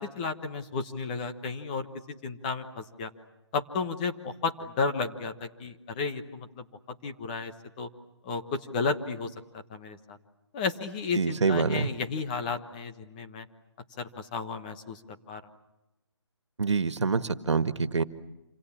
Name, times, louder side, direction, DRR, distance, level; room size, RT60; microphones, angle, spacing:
voice 1, 0.0-1.9 2.2-3.1 3.5-6.6 7.0-7.9 8.2-9.3 9.7-10.2 10.5-13.5 14.0-15.0 15.3-15.4, left 4 dB, 15° left, 6 dB, 1.2 m, -33 dB
voice 2, 11.2-11.9 16.6-18.0, right 4 dB, 75° right, 11 dB, 1.8 m, -26 dB
27.5 x 27.5 x 7.4 m, 0.94 s
hypercardioid pair, 165°, 15 cm